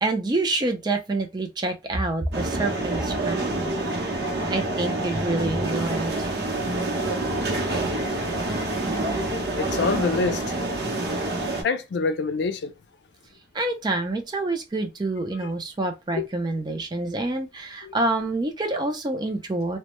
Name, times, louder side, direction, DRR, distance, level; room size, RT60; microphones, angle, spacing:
voice 1, 0.0-3.7 4.5-6.3 13.5-19.8, right 2 dB, 25° right, 0.4 m, -27 dB
sound 1, 2.3-11.6, right 2 dB, 65° right, 0.7 m, -27 dB
voice 2, 9.5-10.4 11.6-12.7 16.1-16.3 17.8-18.0, left 4 dB, 85° left, 0.4 m, -26 dB
2.1 x 2.0 x 2.9 m
head